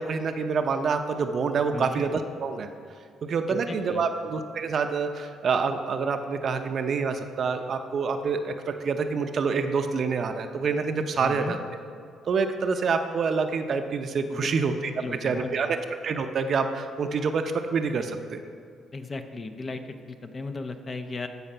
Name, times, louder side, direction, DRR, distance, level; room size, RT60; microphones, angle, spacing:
voice 1, 0.0-2.7 3.2-11.6 12.3-14.9 15.2-15.8 16.0-17.4 17.7-18.4, right 5 dB, 55° right, 7 dB, 0.7 m, -27 dB
voice 2, 3.5-4.0 11.2-11.6 14.3-14.5 15.0-15.7 18.9-19.8 20.1-21.3, left 3 dB, 35° left, 7 dB, 0.8 m, -36 dB
14.0 x 5.0 x 5.6 m, 2.2 s
cardioid pair, 90°, 0 cm